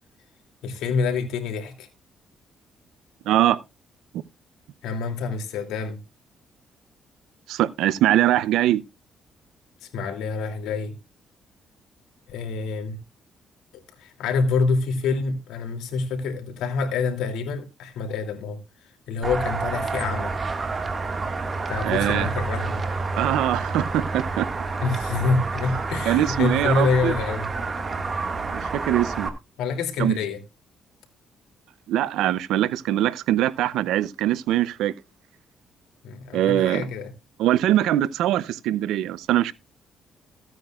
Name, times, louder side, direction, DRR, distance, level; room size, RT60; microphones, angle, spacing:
voice 1, 0.6-1.9 4.8-6.0 9.8-10.9 12.3-13.0 14.0-18.6 19.1-20.3 21.7-22.8 24.8-27.5 29.6-30.4 36.0-37.1, left 4 dB, 90° left, 2.6 m, -26 dB
voice 2, 3.3-3.6 7.5-8.8 21.8-22.3 23.2-24.5 26.1-27.1 28.5-29.3 30.0-30.1 31.9-34.9 36.3-36.9 37.4-39.5, right 13 dB, 90° right, 0.6 m, -22 dB
sound 1, 19.2-29.3, right 3 dB, 35° right, 1.7 m, -29 dB
16.0 x 9.1 x 2.4 m
cardioid pair, 90°, 0 cm